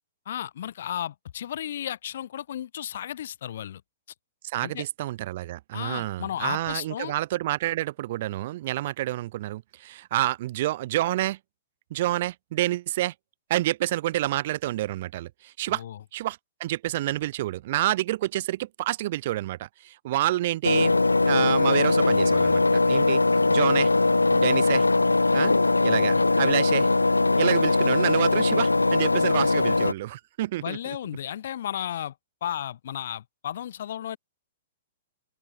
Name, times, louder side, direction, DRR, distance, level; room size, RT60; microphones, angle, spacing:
voice 1, 0.3-3.8 4.6-4.9 5.7-7.1 15.7-16.0 26.1-26.3 30.6-32.1 32.4-34.2, left 10 dB, 55° left, 2.2 m, -34 dB
voice 2, 4.4-11.4 11.9-13.1 13.5-15.8 16.1-20.9 21.2-23.2 23.5-23.9 24.3-24.8 25.3-25.5 25.8-26.9 27.4-30.8, right 15 dB, 45° right, 0.6 m, -28 dB
Engine, 20.6-29.9, left 3 dB, 80° left, 0.5 m, -21 dB
open air
figure-of-eight pair, 110°, 0 cm